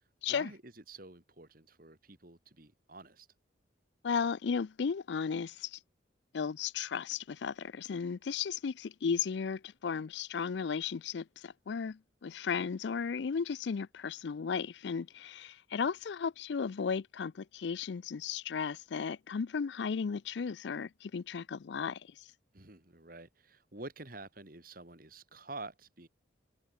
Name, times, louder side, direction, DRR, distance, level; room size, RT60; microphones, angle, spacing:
voice 1, 0.3-3.3 22.5-26.1, right 2 dB, 50° right, 3.0 m, -48 dB
voice 2, 4.0-5.8 6.3-22.3, left 6 dB, 65° left, 0.4 m, -35 dB
open air
head